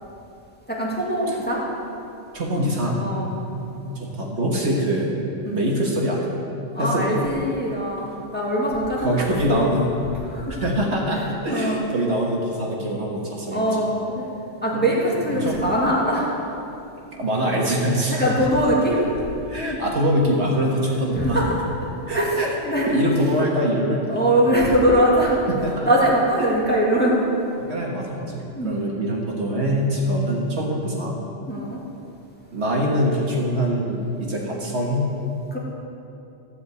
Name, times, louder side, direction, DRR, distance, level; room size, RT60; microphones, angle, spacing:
voice 1, 0.7-1.6 3.0-3.4 5.5-5.6 6.7-9.2 9.5-9.7 10.3-10.6 11.5-11.8 13.5-14.3 14.6-16.3 18.1-19.0 21.2-21.4 22.1-22.3 22.6-22.9 24.1-25.3 25.9-27.2 28.5-28.7 31.5-31.8 35.5-35.6, right 1 dB, 10° left, -5 dB, 1.8 m, -21 dB
voice 2, 2.3-3.0 3.5-5.2 5.5-6.4 6.8-7.2 9.0-10.0 10.5-13.8 14.7-14.9 15.3-15.6 17.1-18.5 19.5-21.4 22.1-22.5 22.9-24.0 25.5-25.9 26.4-26.5 27.7-31.1 32.5-35.1, equal, 60° right, -2 dB, 1.7 m, -24 dB
13.0 x 4.9 x 8.0 m, 2.8 s
omnidirectional pair, 1.3 m